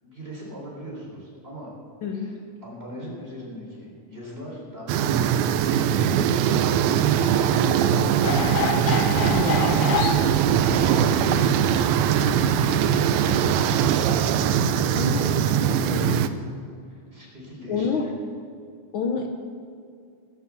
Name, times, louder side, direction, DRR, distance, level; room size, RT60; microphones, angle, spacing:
voice 1, 0.0-1.7 2.1-8.6 9.6-10.0 10.7-14.1 14.5-15.9 16.8-18.1, equal, 20° right, -4 dB, 3.9 m, -40 dB
voice 2, 2.0-2.3 9.3-9.7 15.0-15.3 15.6-16.2 17.7-18.1 18.9-19.3, left 5 dB, 85° left, 2 dB, 1.1 m, -28 dB
sound 1, 4.9-16.3, right 9 dB, 75° right, 1.8 m, -21 dB
sound 2, 8.2-13.7, left 5 dB, 65° left, 1.5 m, -30 dB
19.5 x 6.9 x 7.0 m, 2.4 s
omnidirectional pair, 3.6 m